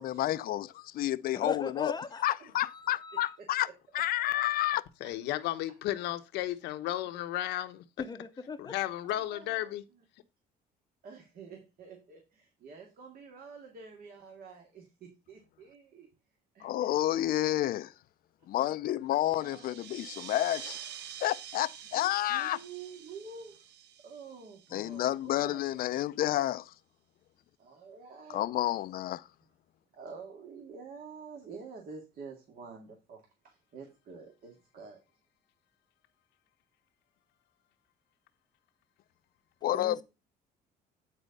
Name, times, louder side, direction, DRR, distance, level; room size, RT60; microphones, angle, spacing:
voice 1, 0.0-1.9 2.2-3.7 3.9-4.8 16.6-17.9 18.5-20.8 21.2-22.6 24.7-26.6 28.3-29.2 39.6-40.0, left 14 dB, 60° left, 0.5 m, -30 dB
voice 2, 1.3-2.4 2.6-3.4 8.0-8.8 39.7-40.0, left 4 dB, 25° left, 0.8 m, -38 dB
voice 3, 3.4-4.7 9.1-9.7 11.0-16.1 16.5-17.5 19.3-20.0 22.3-23.6 24.0-26.0 26.3-26.5 27.6-28.5 29.9-35.0, right 5 dB, 60° right, 2.2 m, -49 dB
voice 4, 5.0-7.8 8.6-9.8, left 14 dB, 90° left, 1.0 m, -34 dB
sound 1, 19.2-25.3, right 10 dB, 90° right, 0.9 m, -47 dB
9.8 x 4.4 x 5.3 m
cardioid pair, 110°, 17 cm